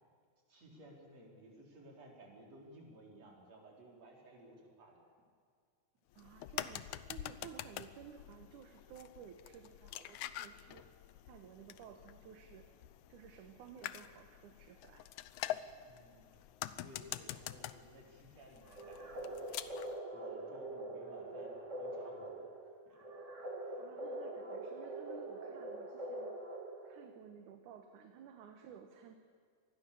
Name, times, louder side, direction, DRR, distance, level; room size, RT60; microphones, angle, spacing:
voice 1, 0.5-5.0 15.9-16.5 16.8-19.7 20.1-23.1 23.6-23.9, right 1 dB, 55° right, -1 dB, 5.5 m, -58 dB
sound 1, 6.1-20.0, left 13 dB, 75° left, 2.0 m, -46 dB
voice 2, 6.2-10.8 11.3-12.7 13.1-15.1 23.8-26.3 26.8-29.2, right 7 dB, 75° right, 5 dB, 2.7 m, -55 dB
sound 2, 18.7-27.1, right 1 dB, 25° right, 2.5 m, -44 dB
27.0 x 20.0 x 7.0 m, 2.1 s
omnidirectional pair, 3.6 m